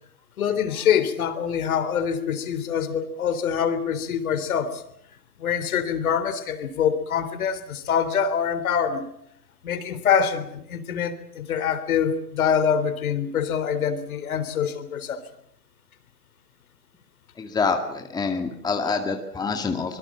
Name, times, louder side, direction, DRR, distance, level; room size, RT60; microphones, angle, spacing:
voice 1, 0.4-4.8 5.4-9.1 9.6-15.2, left 7 dB, 60° left, 11 dB, 3.8 m, -25 dB
voice 2, 17.4-20.0, left 4 dB, 10° left, 4 dB, 2.2 m, -26 dB
25.0 x 23.5 x 7.6 m, 0.75 s
hypercardioid pair, 125°, 49 cm